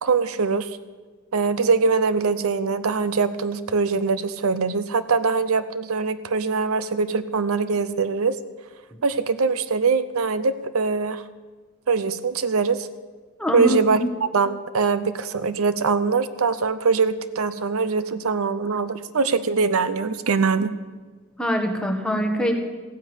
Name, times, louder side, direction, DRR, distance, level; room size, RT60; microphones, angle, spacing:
voice 1, 0.0-0.7 1.3-8.4 9.0-11.2 11.9-12.9 13.5-14.0 14.3-20.7, right 4 dB, 75° right, 14 dB, 0.6 m, -22 dB
voice 2, 13.4-14.0 21.4-22.5, equal, 5° left, 3 dB, 1.4 m, -23 dB
15.0 x 9.8 x 8.1 m, 1.3 s
head